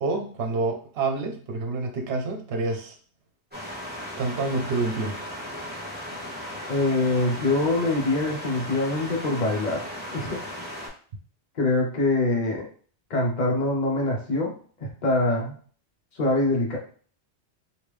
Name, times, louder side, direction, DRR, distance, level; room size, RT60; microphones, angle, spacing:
voice 1, 0.0-2.9 4.2-5.2, right 3 dB, 65° right, 3 dB, 0.9 m, -28 dB
sound 1, 3.5-10.9, equal, 10° right, 1.2 m, -36 dB
voice 2, 6.7-10.4 11.6-12.7 13.1-14.5 14.8-15.5 16.2-16.8, left 2 dB, 45° left, -1 dB, 1.0 m, -24 dB
3.5 x 2.6 x 3.2 m, 0.43 s
omnidirectional pair, 1.2 m